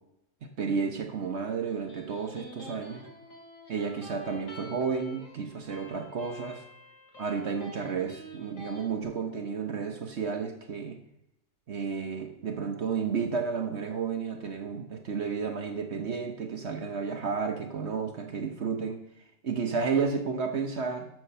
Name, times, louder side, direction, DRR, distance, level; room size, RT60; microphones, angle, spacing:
voice 1, 0.6-3.1 3.7-6.6 7.2-11.0 11.7-19.0 19.4-21.1, right 5 dB, 55° right, 4 dB, 1.2 m, -32 dB
Electric guitar, 1.4-8.8, left 1 dB, 70° left, 3.1 m, -48 dB
11.0 x 5.7 x 6.7 m, 0.86 s
omnidirectional pair, 1.4 m